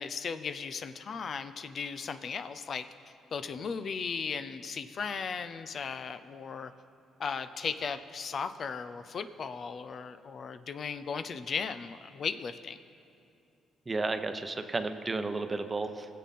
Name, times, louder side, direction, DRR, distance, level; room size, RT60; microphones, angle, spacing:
voice 1, 0.0-2.9 3.3-6.7 7.2-12.8, left 5 dB, 50° left, 11 dB, 0.6 m, -36 dB
voice 2, 13.9-16.1, right 3 dB, 25° right, 8 dB, 0.8 m, -32 dB
20.5 x 7.6 x 4.2 m, 2.6 s
cardioid pair, 90°, 0 cm